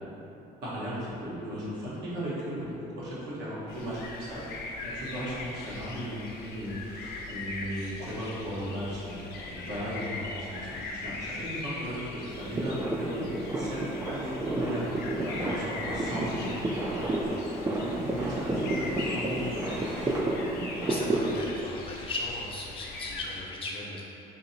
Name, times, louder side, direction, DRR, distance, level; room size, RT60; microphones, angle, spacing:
voice 1, 0.6-4.4 4.8-13.2 13.5-17.3 17.6-19.7 20.1-20.2, equal, 85° right, -9 dB, 1.2 m, -36 dB
sound 1, 3.7-23.4, left 3 dB, 70° left, 0.5 m, -41 dB
sound 2, 12.3-21.5, right 1 dB, 15° right, 0.3 m, -31 dB
sound 3, 15.2-20.2, right 1 dB, 50° right, 0.7 m, -44 dB
voice 2, 20.8-24.0, left 2 dB, 30° left, -3 dB, 0.6 m, -37 dB
2.9 x 2.8 x 4.0 m, 3.0 s
cardioid pair, 110°, 17 cm